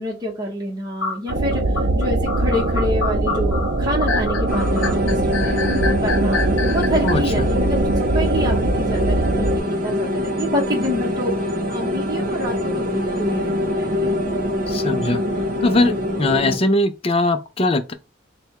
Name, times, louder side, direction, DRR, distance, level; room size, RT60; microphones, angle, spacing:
voice 1, 0.0-6.4 6.7-11.3 11.7-14.1, equal, 20° right, 1.0 m, -27 dB
sound 1, 1.0-7.1, left 4 dB, 80° left, 0.8 m, -27 dB
sound 2, 1.3-9.6, right 2 dB, 80° right, 0.6 m, -21 dB
sound 3, 4.5-16.6, left 1 dB, 45° right, 0.8 m, -24 dB
voice 2, 7.0-7.4 14.7-15.2 15.6-17.9, left 2 dB, 30° left, 0.5 m, -20 dB
3.4 x 2.3 x 4.4 m
head